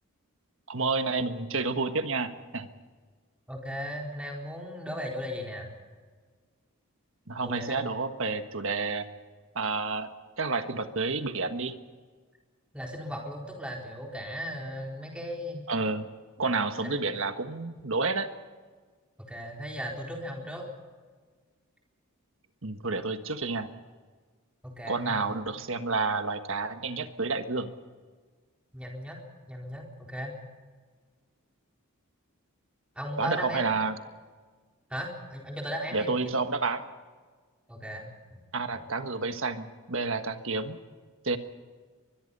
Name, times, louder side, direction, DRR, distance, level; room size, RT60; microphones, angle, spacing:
voice 1, 0.7-2.7 7.3-9.0 9.5-10.1 10.4-11.7 15.7-16.1 16.4-18.3 22.6-23.7 24.9-27.7 33.2-34.0 35.9-36.8 38.5-40.8 41.2-41.4, right 3 dB, 60° right, 8 dB, 1.5 m, -30 dB
voice 2, 3.5-5.7 7.4-7.8 12.7-15.7 16.8-16.9 19.2-20.7 24.6-25.2 28.7-29.2 29.5-30.3 33.0-33.7 34.9-36.1 37.7-38.4, equal, 5° right, -1 dB, 4.1 m, -37 dB
24.0 x 21.5 x 5.5 m, 1.5 s
head